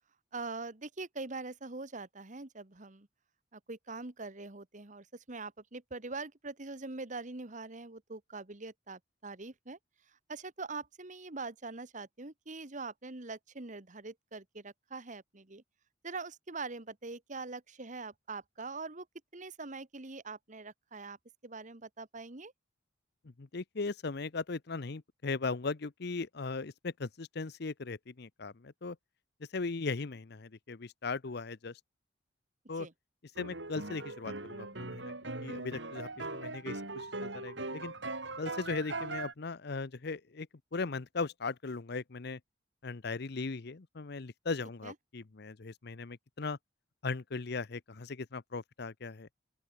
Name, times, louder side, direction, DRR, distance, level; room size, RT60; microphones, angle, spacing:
voice 1, 0.3-3.1 3.5-9.8 10.3-15.6 16.0-19.1 19.3-21.2 21.4-22.5 32.8-32.9 44.8-44.9, right 3 dB, 40° right, 1.6 m, -43 dB
voice 2, 23.4-29.0 29.5-31.7 32.7-32.9 33.4-35.1 35.4-37.9 38.4-40.5 40.7-42.4 42.8-46.6 47.0-49.3, left 4 dB, 60° left, 0.8 m, -38 dB
sound 1, 33.4-39.3, right 2 dB, 70° right, 4.4 m, -40 dB
open air
head